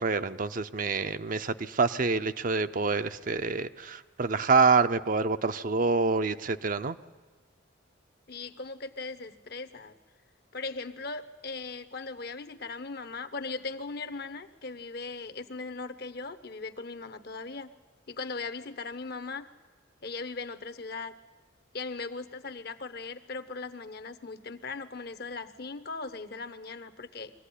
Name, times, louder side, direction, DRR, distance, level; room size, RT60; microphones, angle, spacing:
voice 1, 0.0-7.0, right 4 dB, 45° right, 10 dB, 0.6 m, -26 dB
voice 2, 8.3-9.9 10.5-17.7 18.1-19.5 20.0-21.1 21.7-27.3, left 3 dB, 50° left, 12 dB, 0.9 m, -39 dB
23.0 x 15.5 x 10.0 m, 1.4 s
head